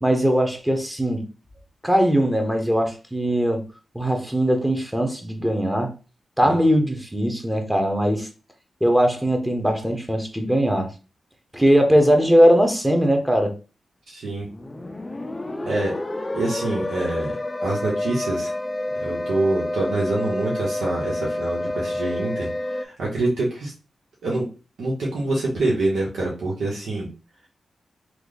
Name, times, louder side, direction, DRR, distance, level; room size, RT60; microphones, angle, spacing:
voice 1, 0.0-1.2 1.8-3.6 3.9-5.9 6.4-8.3 8.8-10.9 11.5-13.5, equal, 10° right, 1.0 m, -20 dB
voice 2, 14.1-14.5 15.7-15.9 16.3-17.3 17.6-18.5 19.0-23.7 24.2-24.5 24.8-27.1, right 2 dB, 85° right, 1.0 m, -25 dB
sound 1, 14.4-22.9, left 1 dB, 25° left, 0.4 m, -29 dB
3.1 x 2.3 x 3.9 m
cardioid pair, 65°, 0 cm